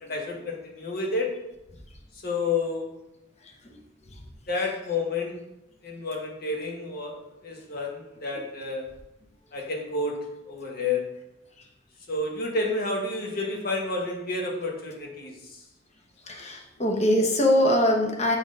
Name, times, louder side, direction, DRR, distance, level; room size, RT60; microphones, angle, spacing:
voice 1, 0.0-1.3 2.2-2.9 4.5-5.4 5.8-8.9 9.5-11.0 12.1-15.6, left 3 dB, 50° left, 0 dB, 1.3 m, -30 dB
voice 2, 3.4-3.8 4.0-4.2 8.3-8.4 11.6-11.7 16.2-18.4, left 1 dB, 35° left, 0 dB, 1.0 m, -23 dB
6.3 x 3.4 x 5.2 m, 0.92 s
head